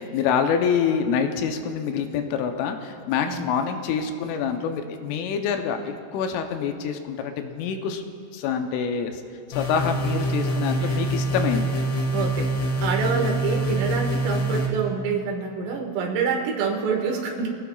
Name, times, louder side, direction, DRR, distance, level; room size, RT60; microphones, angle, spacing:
voice 1, 0.0-8.1 8.3-9.2 9.5-11.7 13.1-13.4, left 7 dB, 80° left, 5 dB, 3.3 m, -26 dB
sound 1, 9.5-14.7, right 1 dB, 65° left, 3.6 m, -25 dB
voice 2, 12.1-12.5 12.8-17.5, right 5 dB, 85° right, 1 dB, 4.2 m, -27 dB
24.0 x 17.5 x 2.3 m, 2.3 s
omnidirectional pair, 5.7 m